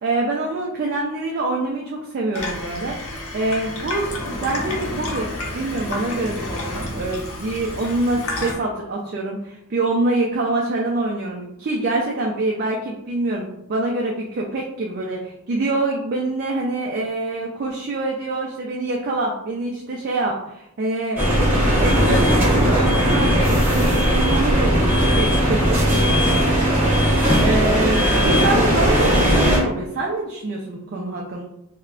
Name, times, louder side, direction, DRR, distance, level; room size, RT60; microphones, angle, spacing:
voice 1, 0.0-21.2 21.7-31.4, right 2 dB, 45° right, -2 dB, 0.3 m, -25 dB
Water tap faucet / Sink (filling or washing), 2.3-8.5, left 2 dB, 80° left, 0.7 m, -30 dB
sound 1, 21.2-29.6, equal, 10° right, 0.9 m, -18 dB
3.4 x 2.1 x 2.4 m, 0.82 s
head